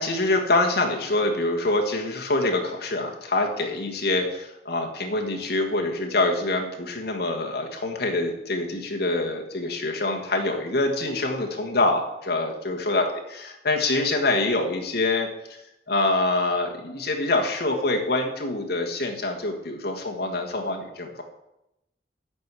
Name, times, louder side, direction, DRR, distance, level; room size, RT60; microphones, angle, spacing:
voice 1, 0.0-13.1 13.4-15.6 15.9-21.2, left 2 dB, 60° left, 1 dB, 1.6 m, -25 dB
11.5 x 4.8 x 8.2 m, 0.90 s
head